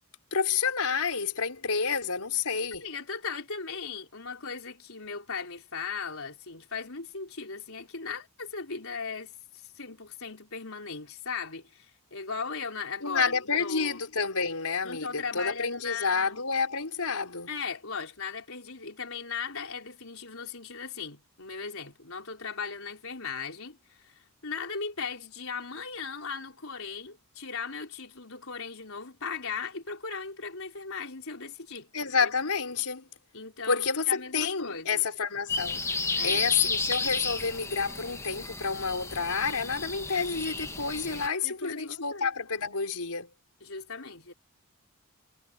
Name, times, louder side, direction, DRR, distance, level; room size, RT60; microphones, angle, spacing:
voice 1, 0.3-2.9 13.0-17.5 31.9-33.0 33.7-35.9 36.2-43.3, left 5 dB, 85° left, 4.6 m, -29 dB
voice 2, 2.8-9.3 9.8-14.0 14.8-16.4 17.5-31.9 32.2-32.3 33.3-35.0 36.2-36.5 41.4-42.3 43.6-44.3, left 5 dB, 65° left, 5.2 m, -38 dB
sound 1, 35.5-41.3, left 3 dB, 15° left, 1.3 m, -32 dB
head